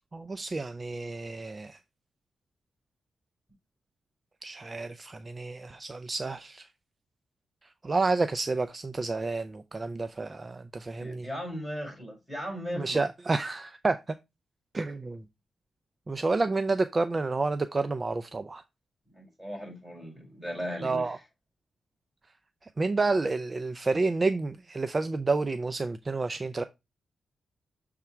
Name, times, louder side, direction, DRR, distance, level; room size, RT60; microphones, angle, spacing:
voice 1, 0.1-1.8 4.4-6.7 7.8-11.3 12.7-14.0 14.7-15.2 16.1-18.6 20.8-21.2 22.8-26.6, right 3 dB, 30° right, 0.4 m, -29 dB
voice 2, 11.0-13.0 19.1-21.2, equal, ahead, 4.9 m, -37 dB
6.9 x 3.6 x 4.4 m
cardioid pair, 105°, 0 cm